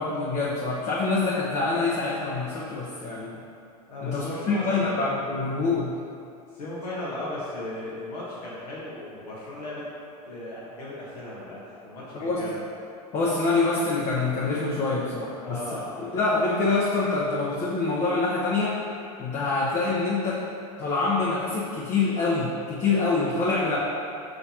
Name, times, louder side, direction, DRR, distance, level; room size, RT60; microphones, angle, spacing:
voice 1, 0.0-3.4 4.0-5.9 12.1-12.5 13.1-15.6 16.1-18.8 19.2-20.4 20.8-23.8, left 3 dB, 35° left, -5 dB, 0.9 m, -25 dB
voice 2, 3.9-5.1 6.5-9.8 10.2-12.6 15.4-16.1, left 1 dB, 85° left, -8 dB, 1.4 m, -36 dB
6.6 x 5.5 x 2.9 m, 2.6 s
hypercardioid pair, 100°, 20 cm